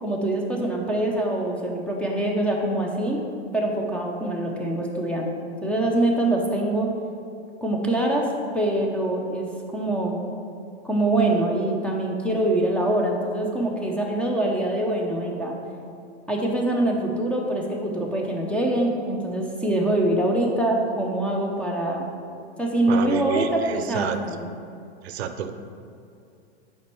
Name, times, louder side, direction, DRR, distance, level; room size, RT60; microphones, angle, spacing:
voice 1, 0.0-3.2 3.5-6.9 7.6-8.3 8.5-10.1 10.8-15.5 16.3-22.1 22.6-24.4, right 1 dB, 5° left, -1 dB, 0.6 m, -24 dB
voice 2, 22.9-24.2 25.0-25.5, right 8 dB, 70° right, 9 dB, 0.6 m, -29 dB
5.7 x 4.5 x 4.6 m, 2.5 s
hypercardioid pair, 115°, 33 cm